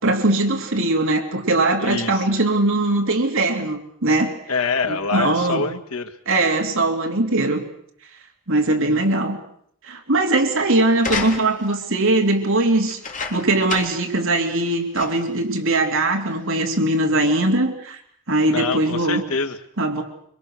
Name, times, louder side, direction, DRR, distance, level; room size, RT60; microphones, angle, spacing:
voice 1, 0.0-4.3 4.9-5.6 6.3-7.6 8.5-9.4 9.8-13.0 13.3-18.0 18.3-19.2 19.8-20.0, right 2 dB, 65° right, 3 dB, 3.2 m, -20 dB
voice 2, 1.8-2.3 4.5-6.2 18.5-19.6, left 4 dB, 90° left, 6 dB, 2.0 m, -25 dB
sound 1, 11.0-11.8 12.8-14.1 14.5-14.6 14.9-15.4 16.1-16.2, left 4 dB, 35° left, 3.2 m, -30 dB
26.0 x 25.0 x 6.5 m, 0.67 s
head